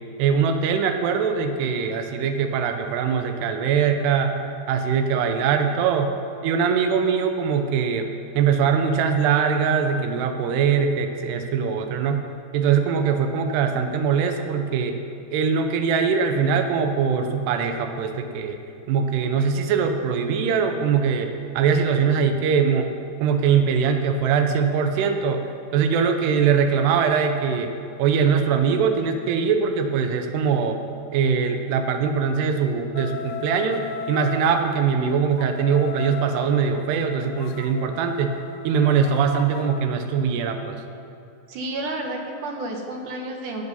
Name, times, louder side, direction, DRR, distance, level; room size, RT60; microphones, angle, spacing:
voice 1, 0.2-4.3 4.7-6.1 6.4-8.1 8.4-12.2 12.5-15.0 15.3-18.6 18.9-22.9 23.2-25.4 25.7-27.7 28.0-30.8 31.1-38.4 38.6-40.8, right 6 dB, 85° right, 6 dB, 2.9 m, -22 dB
sound 1, 32.9-34.7 35.4-39.8, left 7 dB, 85° left, 2.4 m, -36 dB
voice 2, 41.5-43.6, right 2 dB, 65° right, 2 dB, 2.3 m, -31 dB
16.5 x 8.0 x 5.4 m, 2.6 s
omnidirectional pair, 4.7 m